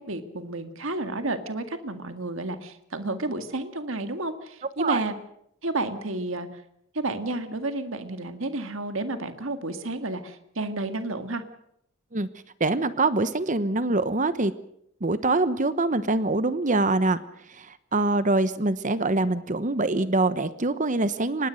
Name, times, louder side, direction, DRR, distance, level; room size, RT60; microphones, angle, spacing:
voice 1, 0.0-5.1 5.6-6.6 6.9-11.4, right 2 dB, 65° right, 8 dB, 2.0 m, -31 dB
voice 2, 12.6-14.5 15.0-17.2 17.5-21.5, right 2 dB, 35° right, 13 dB, 1.0 m, -24 dB
25.0 x 20.5 x 6.5 m, 0.74 s
head